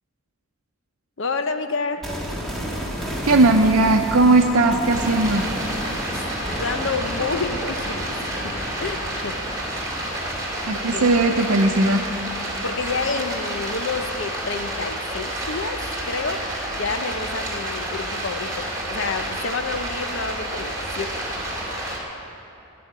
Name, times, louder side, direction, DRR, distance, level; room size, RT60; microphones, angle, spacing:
voice 1, 1.2-2.2 6.5-9.4 10.7-11.1 12.6-16.4 16.7-21.2, left 4 dB, 60° left, 9 dB, 0.7 m, -29 dB
sound 1, 2.0-12.0 12.3-12.4, equal, ahead, 1.6 m, -32 dB
voice 2, 3.2-5.5 10.7-12.0, right 2 dB, 85° right, 0 dB, 0.7 m, -18 dB
Stream, 4.9-22.0, right 1 dB, 15° right, 2.4 m, -29 dB
13.0 x 7.8 x 9.7 m, 2.9 s
head